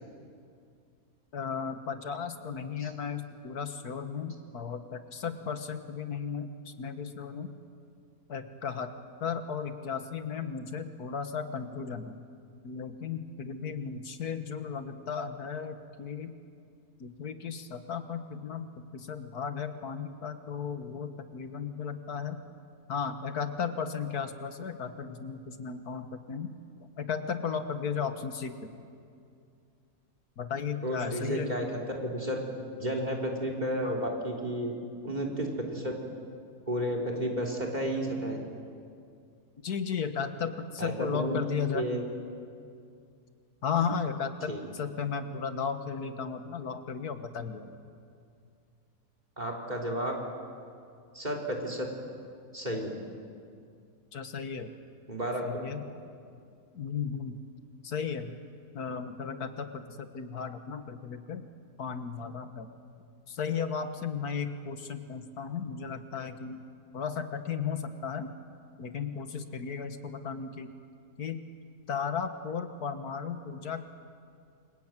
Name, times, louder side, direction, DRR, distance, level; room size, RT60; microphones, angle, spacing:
voice 1, 1.3-7.5 8.3-8.9 9.2-12.2 12.6-16.3 17.0-22.4 22.9-26.5 26.8-28.5 30.4-31.6 39.6-41.9 43.6-47.7 54.1-54.7 55.4-55.8 56.7-57.4 57.8-58.3 58.7-61.4 61.8-62.7 63.3-66.6 66.9-68.3 68.8-70.7 71.2-71.4 71.9-73.9, left 6 dB, 85° left, 8 dB, 1.9 m, -35 dB
voice 2, 30.8-31.7 32.0-32.4 32.8-34.8 35.0-35.9 36.7-38.4 40.8-42.0 44.5-44.6 49.4-50.1 51.1-51.9 52.5-52.9 55.1-55.5, equal, 30° right, 2 dB, 3.8 m, -32 dB
28.0 x 23.5 x 9.1 m, 2.4 s
omnidirectional pair, 1.6 m